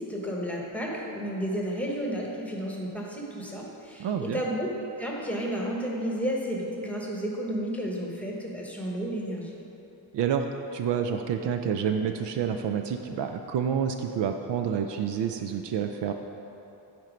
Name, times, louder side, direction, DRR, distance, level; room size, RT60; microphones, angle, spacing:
voice 1, 0.0-4.7 5.0-9.6, equal, 5° left, -3 dB, 1.1 m, -32 dB
voice 2, 4.0-4.4 10.1-10.5 10.7-16.1, right 7 dB, 65° right, 6 dB, 0.5 m, -28 dB
9.4 x 4.5 x 5.1 m, 3.0 s
cardioid pair, 125°, 46 cm